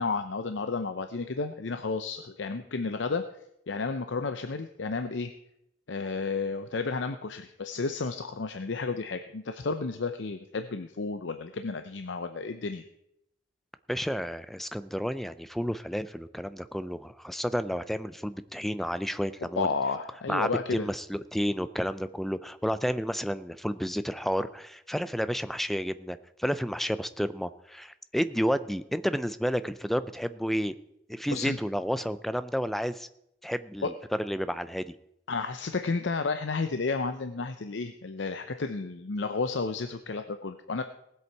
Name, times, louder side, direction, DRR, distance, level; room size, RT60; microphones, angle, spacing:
voice 1, 0.0-3.2 3.7-5.3 5.9-12.8 19.6-20.9 31.3-31.6 33.8-33.9 35.3-40.8, left 4 dB, 80° left, 9 dB, 0.6 m, -32 dB
voice 2, 13.9-19.7 20.3-30.7 31.1-33.1 33.4-33.9 34.2-34.8, equal, ahead, 13 dB, 0.4 m, -31 dB
18.5 x 8.0 x 4.6 m, 0.80 s
head